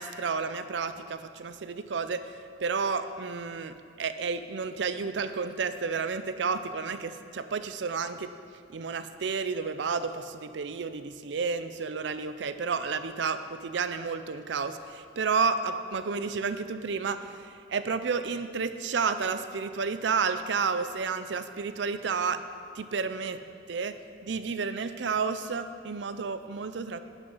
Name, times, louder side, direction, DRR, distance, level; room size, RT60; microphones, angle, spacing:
voice 1, 0.0-2.3 2.6-8.3 8.7-22.4 22.8-23.4 23.7-27.0, right 5 dB, 75° right, 11 dB, 0.5 m, -31 dB
11.5 x 6.6 x 5.6 m, 2.2 s
head